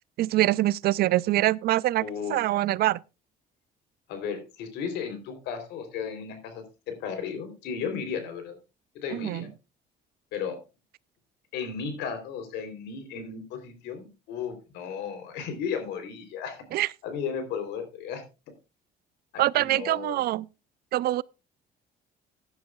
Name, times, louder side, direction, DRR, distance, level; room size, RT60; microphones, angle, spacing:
voice 1, 0.2-3.0 9.1-9.4 16.7-16.9 19.4-20.5 20.9-21.2, right 15 dB, 65° right, 0.5 m, -24 dB
voice 2, 2.0-2.4 4.1-8.6 8.9-9.5 10.3-10.6 11.5-16.6 17.0-18.2 19.3-20.2, left 6 dB, 90° left, 3.5 m, -34 dB
15.5 x 10.5 x 2.3 m
cardioid pair, 110°, 17 cm